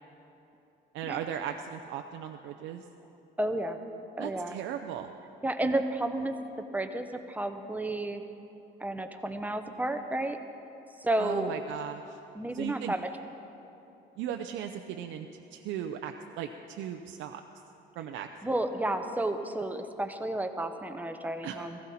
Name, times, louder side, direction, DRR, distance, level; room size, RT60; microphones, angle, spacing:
voice 1, 0.9-2.9 4.2-5.1 11.2-12.2 12.5-12.9 14.2-17.4 18.0-18.3 21.4-21.6, right 9 dB, 80° right, 4 dB, 0.6 m, -37 dB
voice 2, 3.4-3.8 4.2-4.6 5.4-8.2 8.8-10.4 11.0-11.5 12.3-13.1 18.4-21.8, right 1 dB, 10° right, 7 dB, 0.8 m, -31 dB
16.0 x 15.5 x 4.3 m, 2.9 s
cardioid pair, 120°, 20 cm